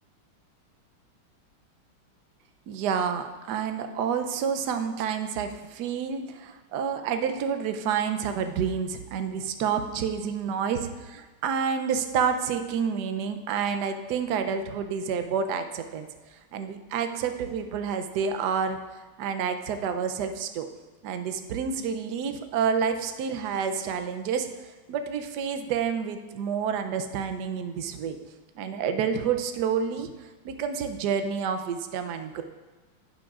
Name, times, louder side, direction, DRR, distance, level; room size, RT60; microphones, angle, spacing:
voice 1, 2.7-16.1 16.5-18.8 19.2-20.7 21.0-24.5 24.9-28.2 28.6-30.1 30.4-32.4, right 7 dB, 70° right, 7 dB, 1.0 m, -29 dB
10.5 x 8.4 x 2.4 m, 1.2 s
omnidirectional pair, 2.3 m